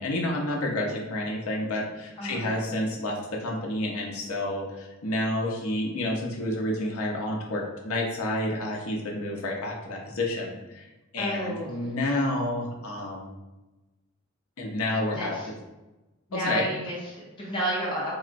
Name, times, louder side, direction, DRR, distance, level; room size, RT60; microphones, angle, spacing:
voice 1, 0.0-10.9 11.1-13.3 14.6-15.4 16.3-16.7, left 1 dB, 80° left, -1 dB, 0.6 m, -29 dB
voice 2, 2.2-2.5 11.2-11.9 15.1-15.5 16.3-18.1, equal, 25° left, -6 dB, 0.6 m, -31 dB
3.7 x 2.0 x 2.5 m, 1.1 s
head